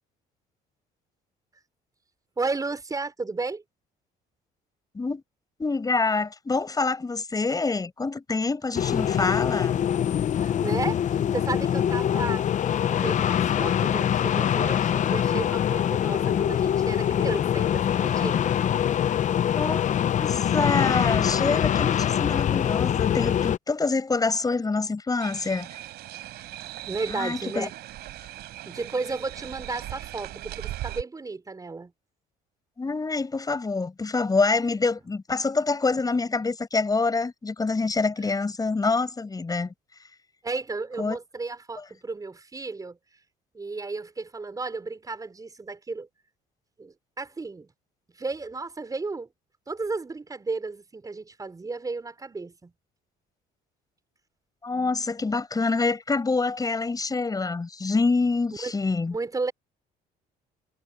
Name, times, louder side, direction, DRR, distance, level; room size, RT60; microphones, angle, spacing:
voice 1, 2.4-3.6 10.4-18.5 26.3-26.5 26.8-27.8 28.7-31.9 40.4-43.0 43.5-46.1 46.8-47.7 48.2-49.3 49.7-52.7 58.6-58.7 59.1-59.5, right 3 dB, 20° right, 5.3 m, -33 dB
voice 2, 5.6-9.8 19.5-19.9 20.2-25.7 27.1-27.7 32.8-39.7 41.0-41.2 54.6-59.1, left 3 dB, 20° left, 6.2 m, -26 dB
sound 1, 8.7-23.6, left 10 dB, 45° left, 0.7 m, -24 dB
sound 2, 25.2-31.0, right 15 dB, 80° right, 4.6 m, -39 dB
cardioid pair, 110°, 17 cm